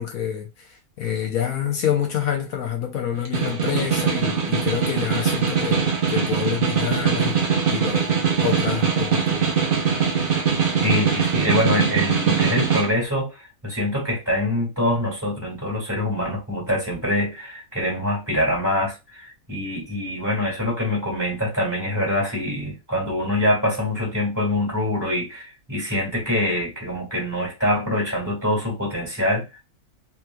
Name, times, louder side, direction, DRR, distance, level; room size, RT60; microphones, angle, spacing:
voice 1, 0.0-9.5, left 9 dB, 75° left, 1.1 m, -27 dB
Snare drum, 3.1-12.9, right 7 dB, 45° right, 0.8 m, -22 dB
voice 2, 10.8-13.3 13.6-29.6, left 1 dB, 10° right, 1.8 m, -24 dB
3.4 x 3.0 x 2.2 m
omnidirectional pair, 1.6 m